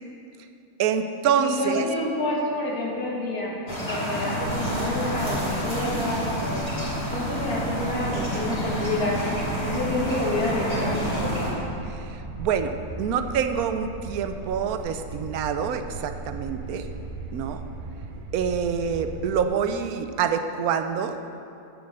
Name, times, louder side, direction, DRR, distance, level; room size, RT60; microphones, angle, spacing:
voice 1, 0.8-1.8 11.9-16.9 17.3-17.6 18.3-21.2, right 7 dB, 85° right, 8 dB, 1.1 m, -26 dB
voice 2, 1.4-6.7 7.1-9.2 9.6-11.4, left 2 dB, 85° left, -4 dB, 2.3 m, -28 dB
sound 1, 3.7-11.5, equal, 20° left, 2.8 m, -29 dB
sound 2, 4.4-19.4, right 3 dB, 55° right, 0.5 m, -38 dB
8.8 x 7.0 x 6.5 m, 2.7 s
omnidirectional pair, 1.6 m